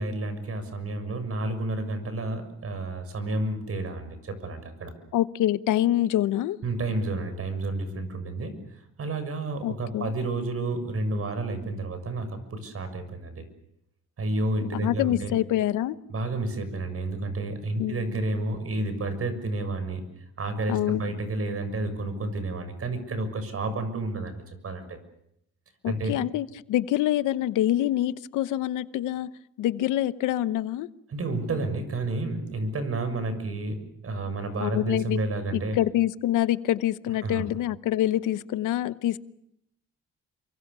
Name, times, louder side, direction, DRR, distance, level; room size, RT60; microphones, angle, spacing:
voice 1, 0.0-4.9 6.6-8.6 9.0-13.4 14.2-15.3 16.1-20.0 20.4-25.0 25.9-26.2 31.1-35.8 37.2-37.5, right 2 dB, 50° right, 10 dB, 6.7 m, -30 dB
voice 2, 5.1-6.6 9.6-10.1 14.7-16.0 17.8-18.2 20.7-21.0 25.8-29.3 29.6-30.9 34.6-35.2 35.5-39.2, left 13 dB, 90° left, 15 dB, 1.0 m, -26 dB
28.0 x 24.5 x 6.9 m, 0.77 s
cardioid pair, 90°, 30 cm